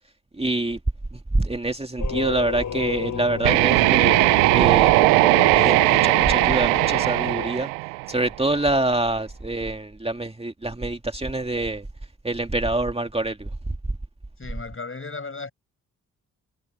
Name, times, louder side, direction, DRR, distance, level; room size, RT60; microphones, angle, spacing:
voice 1, 0.4-0.8 1.3-4.2 4.5-5.1 5.5-7.7 8.1-11.8 12.2-13.5, right 2 dB, 15° right, 2.2 m, -25 dB
sound 1, 2.0-7.5, left 7 dB, 50° left, 3.1 m, -31 dB
sound 2, 3.4-8.3, right 28 dB, 85° right, 0.6 m, -18 dB
voice 2, 14.4-15.5, left 4 dB, 30° left, 7.4 m, -35 dB
hypercardioid pair, 40°, 40 cm